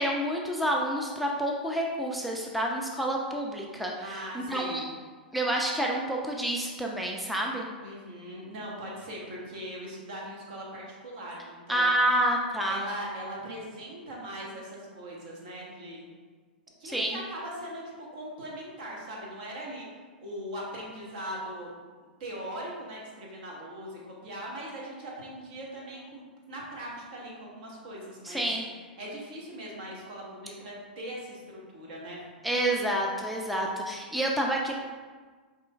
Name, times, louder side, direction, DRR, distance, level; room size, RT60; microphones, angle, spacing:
voice 1, 0.0-4.8 5.3-7.7 11.7-12.8 16.8-17.2 28.2-28.6 32.4-34.8, right 1 dB, ahead, -1 dB, 0.4 m, -28 dB
voice 2, 4.0-4.8 7.8-11.9 12.7-16.1 16.8-19.9 20.2-21.7 22.2-28.4 29.0-32.2, right 1 dB, 60° right, -4 dB, 1.2 m, -40 dB
4.8 x 3.0 x 2.4 m, 1.5 s
figure-of-eight pair, 100°, 5 cm